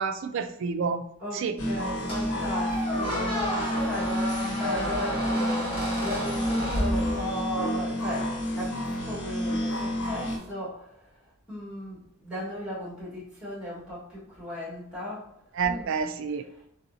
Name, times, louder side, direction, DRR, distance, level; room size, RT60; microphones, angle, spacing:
voice 1, 0.0-1.0 1.3-1.6 15.6-16.4, right 5 dB, 55° right, 9 dB, 0.3 m, -29 dB
voice 2, 1.2-11.1 11.5-15.3 15.6-16.0 16.3-16.6, left 1 dB, 5° right, -7 dB, 1.6 m, -36 dB
sound 1, 1.6-10.4, equal, 90° left, 1.0 m, -30 dB
Squeak, 2.1-7.6, equal, 25° left, 1.2 m, -31 dB
4.0 x 3.8 x 2.7 m, 0.76 s
head